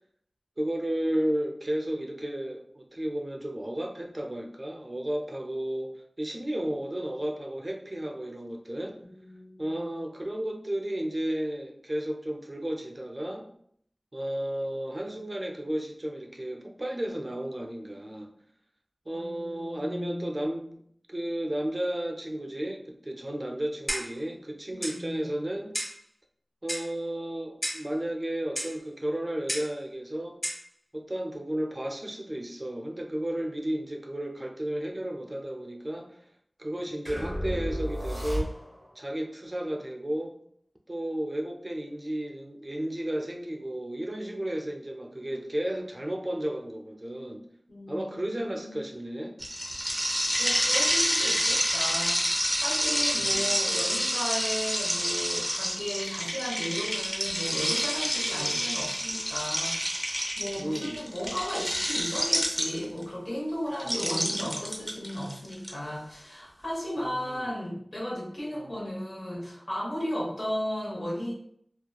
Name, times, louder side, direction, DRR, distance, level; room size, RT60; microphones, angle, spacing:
voice 1, 0.6-9.0 9.6-13.5 14.1-18.3 19.1-20.8 21.1-25.8 26.6-30.4 30.9-36.2 36.6-38.5 39.0-40.4 40.9-47.4 47.9-49.4 53.1-53.5 58.3-58.6 60.6-61.1 63.9-64.5 67.0-67.5, right 1 dB, 35° right, 1 dB, 0.4 m, -33 dB
voice 2, 9.0-9.9 19.1-20.3 24.7-25.3 47.7-48.8 50.4-71.3, equal, 60° left, -4 dB, 0.9 m, -35 dB
Clock, 23.9-24.2 24.8-25.0 25.7-26.0 26.7-27.0 27.6-27.9 28.6-28.8 29.5-29.8 30.4-30.7, equal, 30° left, 0.8 m, -33 dB
sound 1, 37.1-38.9, equal, 85° left, 1.1 m, -32 dB
sound 2, 49.4-63.0 63.8-65.7, equal, ahead, 0.7 m, -28 dB
2.7 x 2.2 x 2.2 m, 0.66 s
wide cardioid pair, 55°, 0 cm